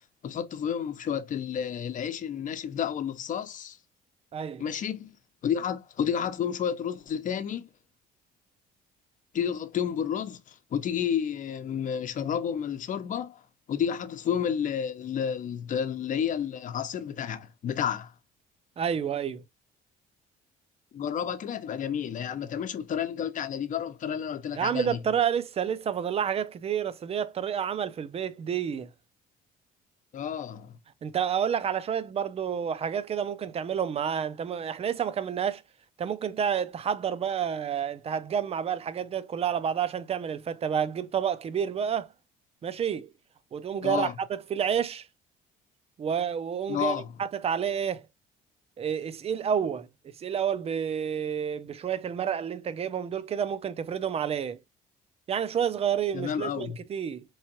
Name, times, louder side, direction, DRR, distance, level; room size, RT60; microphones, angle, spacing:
voice 1, 0.2-3.8 4.6-5.2 5.4-7.7 9.3-13.4 13.7-18.1 20.9-25.0 30.1-30.7 43.8-44.1 46.7-47.1 56.1-56.8, left 8 dB, 50° left, 0.8 m, -31 dB
voice 2, 4.3-4.6 18.8-19.4 24.6-28.9 31.0-35.6 36.0-42.1 42.6-43.1 43.5-45.1 46.0-48.1 48.8-49.9 50.2-54.6 55.3-57.2, right 8 dB, 35° right, 0.6 m, -29 dB
4.5 x 3.1 x 2.9 m
cardioid pair, 110°, 17 cm